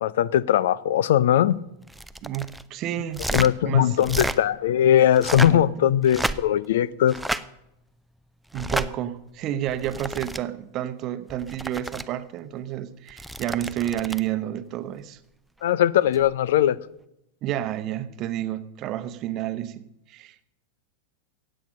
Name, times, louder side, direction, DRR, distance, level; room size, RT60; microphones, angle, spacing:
voice 1, 0.0-1.6 3.3-7.1 15.6-16.8, left 11 dB, 55° left, 0.5 m, -20 dB
sound 1, 1.9-2.6 3.1-3.5 4.0-4.4 5.1-5.6 6.0-6.6 7.1-7.4 8.5-8.9 9.7-10.4 11.3-12.0 13.1-14.3 16.1-16.3, right 1 dB, 5° right, 0.5 m, -31 dB
voice 2, 2.2-4.0 5.5-5.7 8.5-15.2 17.4-20.5, right 12 dB, 35° right, 0.9 m, -30 dB
15.5 x 8.9 x 6.6 m
figure-of-eight pair, 90°, 0 cm